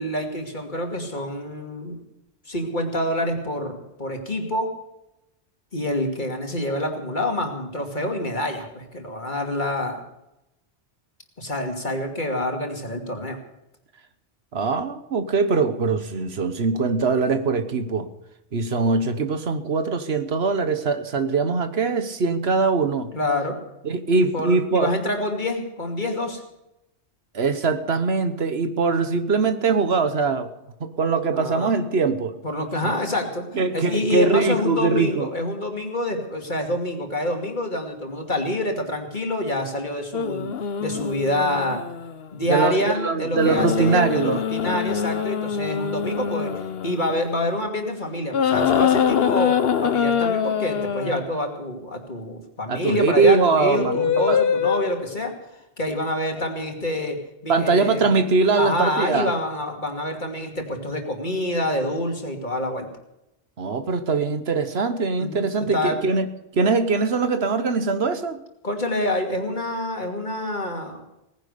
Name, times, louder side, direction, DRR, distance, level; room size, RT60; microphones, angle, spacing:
voice 1, 0.0-2.0 2.5-4.7 5.7-10.0 11.4-13.4 23.1-23.6 24.3-26.4 31.3-31.7 32.4-33.4 33.7-40.5 40.8-41.8 42.3-49.5 49.8-55.3 55.8-57.2 57.4-58.1 58.5-62.9 65.2-66.0 68.6-71.0, left 1 dB, 45° left, 3 dB, 2.8 m, -27 dB
voice 2, 14.5-18.1 18.5-23.1 23.8-24.9 27.3-30.5 30.8-32.3 32.8-32.9 33.5-35.3 42.5-44.4 52.7-54.4 57.5-59.3 63.6-68.4, right 4 dB, 70° right, 10 dB, 1.4 m, -22 dB
sound 1, 40.1-42.3 43.3-47.6 48.3-51.2 53.6-55.1 56.4-56.6, left 7 dB, 65° left, 1.1 m, -24 dB
18.5 x 10.5 x 6.7 m, 0.87 s
omnidirectional pair, 1.1 m